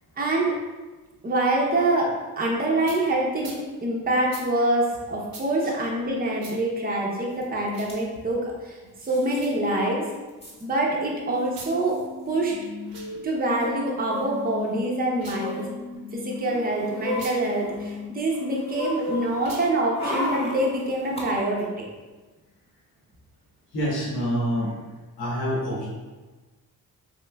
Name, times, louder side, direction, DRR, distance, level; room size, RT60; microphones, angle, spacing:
voice 1, 0.2-0.5 1.2-3.5 3.8-10.0 10.6-12.0 12.3-12.5 13.2-15.6 16.1-21.7, right 1 dB, 25° right, -2 dB, 0.7 m, -25 dB
sound 1, 2.8-3.0 3.4-3.6 4.3-4.5 5.3-5.5 6.4-6.6 7.7-7.9 9.3-9.6 11.4-11.8 12.8-13.1 15.1-15.5 17.1-17.4 19.4-19.7, right 3 dB, 65° right, 0.8 m, -42 dB
sound 2, 7.4-7.5 7.7-8.0 9.0-9.4 9.8-9.9 10.0-10.6 11.5-11.6 11.8-12.0 13.6-14.7 15.3-15.7 16.3-18.0 18.3-21.2 21.6-21.7, equal, 15° left, 1.1 m, -33 dB
sound 3, 11.7-14.7 15.1-18.1, left 3 dB, 55° left, 0.9 m, -39 dB
voice 2, 23.7-24.7 25.2-25.9, equal, 90° left, -6 dB, 1.2 m, -26 dB
3.2 x 3.1 x 2.2 m, 1.2 s
cardioid pair, 75°, 38 cm